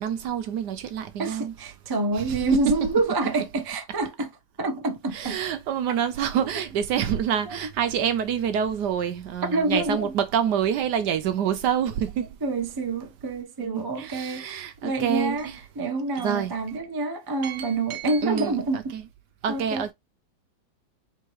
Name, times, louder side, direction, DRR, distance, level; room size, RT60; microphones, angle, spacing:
voice 1, 0.0-1.5 2.2-2.4 5.1-12.3 13.6-15.6 16.2-16.5 17.4-19.0 19.4-19.9, right 8 dB, 70° right, 1.1 m, -27 dB
voice 2, 1.2-4.3 4.6-5.4 7.4-7.6 9.4-10.1 12.4-15.5 15.8-19.0 19.5-19.9, right 2 dB, 25° right, 0.4 m, -27 dB
4.6 x 3.6 x 3.0 m
omnidirectional pair, 2.1 m